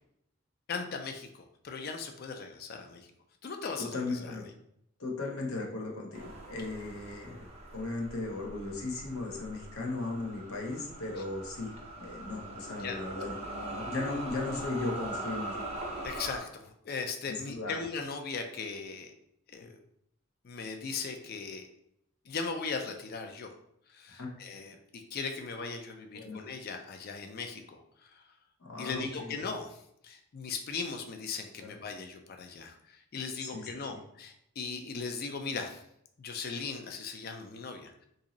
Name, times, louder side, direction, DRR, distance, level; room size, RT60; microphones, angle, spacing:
voice 1, 0.7-3.1 3.4-4.4 12.8-13.0 16.0-19.1 19.5-19.8 20.4-21.7 22.3-23.5 23.9-28.2 28.8-29.8 30.0-35.8 36.2-38.1, left 4 dB, 45° left, 5 dB, 0.4 m, -38 dB
voice 2, 3.8-4.4 5.0-11.7 12.0-15.6 17.3-17.8 24.1-24.3 26.1-26.4 28.6-29.3 31.6-31.7 33.4-34.0, left 3 dB, 90° left, 0 dB, 0.8 m, -37 dB
sound 1, 6.1-16.4, right 1 dB, 30° right, 0.6 m, -42 dB
2.9 x 2.7 x 3.8 m, 0.75 s
head